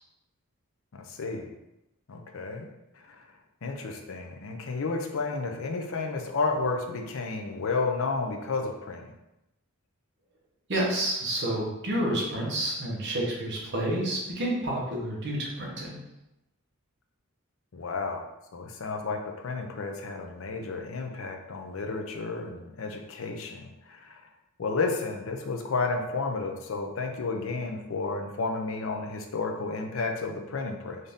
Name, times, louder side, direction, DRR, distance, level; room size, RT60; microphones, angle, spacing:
voice 1, 0.9-1.5 2.1-2.7 2.9-3.2 3.6-9.1 17.7-18.2 18.5-24.2 24.6-31.0, left 3 dB, 65° left, 3 dB, 0.5 m, -32 dB
voice 2, 10.7-16.0, right 1 dB, 55° right, -3 dB, 1.0 m, -29 dB
3.9 x 2.6 x 3.5 m, 0.91 s
head